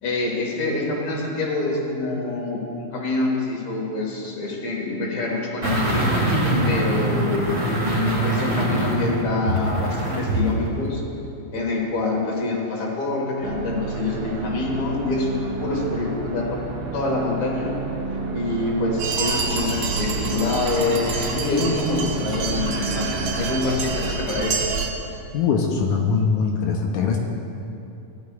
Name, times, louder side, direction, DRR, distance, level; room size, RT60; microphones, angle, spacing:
voice 1, 0.0-6.4 6.7-7.7 8.2-11.0 11.5-15.3 15.6-16.6 16.9-17.7 18.3-24.6, left 2 dB, 60° left, -2 dB, 2.8 m, -26 dB
sound 1, 5.6-10.5 10.8-10.9, right 1 dB, 25° right, 3.2 m, -23 dB
sound 2, 13.4-24.2, right 3 dB, 90° right, 3.2 m, -31 dB
sound 3, 19.0-24.9, right 4 dB, 70° right, 2.0 m, -27 dB
voice 2, 25.3-27.2, left 5 dB, 80° left, 1 dB, 1.9 m, -21 dB
16.5 x 11.0 x 2.4 m, 2.7 s
omnidirectional pair, 4.0 m